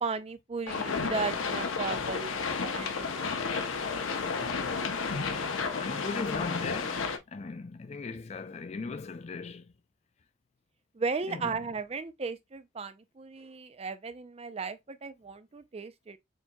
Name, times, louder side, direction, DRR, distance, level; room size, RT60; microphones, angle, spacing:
voice 1, 0.0-3.6 10.9-16.2, right 4 dB, 30° right, 0.4 m, -36 dB
sound 1, 0.7-7.2, left 5 dB, 80° left, 0.8 m, -32 dB
voice 2, 5.3-9.7 11.3-11.6, left 4 dB, 35° left, 0.3 m, -38 dB
6.5 x 2.9 x 2.2 m
head